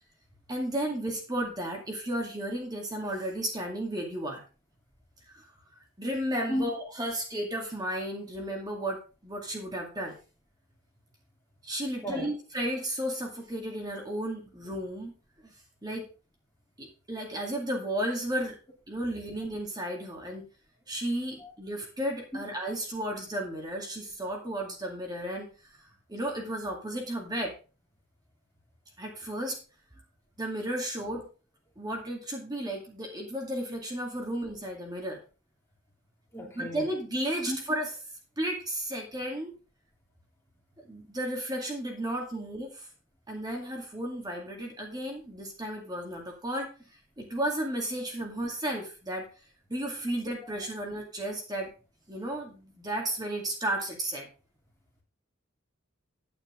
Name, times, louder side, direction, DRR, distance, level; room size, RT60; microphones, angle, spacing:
voice 1, 0.5-4.4 5.3-5.5 6.0-10.1 11.6-15.1 15.4-15.5 15.8-16.1 16.8-18.6 18.9-20.4 20.9-25.5 26.1-27.5 29.0-29.6 30.4-31.3 31.8-35.2 36.5-37.9 38.4-39.5 40.9-42.9 43.3-46.7 47.2-49.3 49.7-51.7 52.1-54.3, right 1 dB, 20° right, 2.2 m, -33 dB
voice 2, 36.3-36.9 37.5-37.6, equal, 15° left, 3.2 m, -33 dB
9.8 x 9.3 x 3.7 m
head